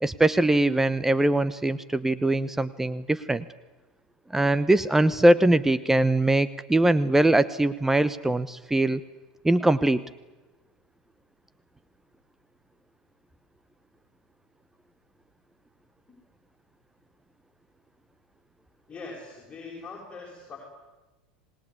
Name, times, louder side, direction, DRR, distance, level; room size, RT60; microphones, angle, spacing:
voice 1, 0.0-3.4 4.3-9.0 9.4-10.0, right 1 dB, 10° right, 15 dB, 0.9 m, -22 dB
voice 2, 18.9-20.6, left 4 dB, 25° left, -2 dB, 6.7 m, -41 dB
26.0 x 19.5 x 9.6 m, 1.1 s
hypercardioid pair, 90°, 4 cm